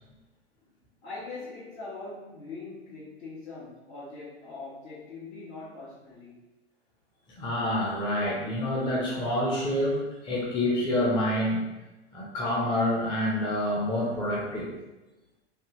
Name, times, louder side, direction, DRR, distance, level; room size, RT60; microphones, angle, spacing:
voice 1, 1.0-6.4, left 3 dB, 70° left, -11 dB, 1.3 m, -42 dB
voice 2, 7.4-11.7 12.1-14.7, left 1 dB, 15° left, -6 dB, 0.6 m, -27 dB
3.3 x 2.3 x 2.8 m, 1.1 s
hypercardioid pair, 100°, 33 cm